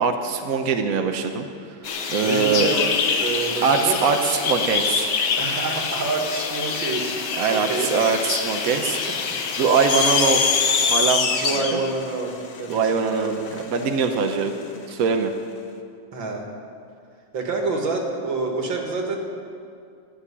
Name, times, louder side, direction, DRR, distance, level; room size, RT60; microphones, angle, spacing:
voice 1, 0.0-1.5 2.1-2.7 3.6-5.1 7.4-9.2 9.6-10.5 10.9-11.8 12.7-14.5 14.9-15.3, right 5 dB, 55° right, 5 dB, 1.2 m, -22 dB
sound 1, 1.8-11.0, left 5 dB, 90° left, 2.0 m, -26 dB
voice 2, 2.2-4.0 5.4-7.9 8.7-8.8 9.1-9.2 11.3-12.3 12.6-13.5 16.1-16.4 17.3-19.2, right 3 dB, 75° right, 1 dB, 2.6 m, -28 dB
sound 2, 9.9-14.4, left 5 dB, 50° left, 0.9 m, -23 dB
14.0 x 8.7 x 9.9 m, 2.3 s
omnidirectional pair, 2.1 m